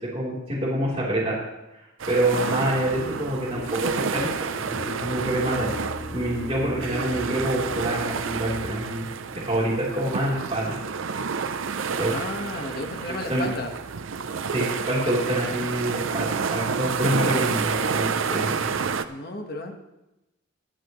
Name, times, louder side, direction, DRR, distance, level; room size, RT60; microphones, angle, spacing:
voice 1, 0.0-1.4 2.1-4.3 4.7-5.7 6.1-9.1 9.3-10.8 11.9-12.1 13.1-13.5 14.5-18.7, right 1 dB, 30° right, -7 dB, 3.6 m, -26 dB
sound 1, 2.0-19.0, right 5 dB, 80° right, 0.6 m, -29 dB
sound 2, 2.9-8.8, left 1 dB, 85° left, 2.0 m, -38 dB
voice 2, 12.1-13.7 19.1-19.7, left 2 dB, 50° left, 3 dB, 1.5 m, -33 dB
21.5 x 8.8 x 3.2 m, 0.97 s
head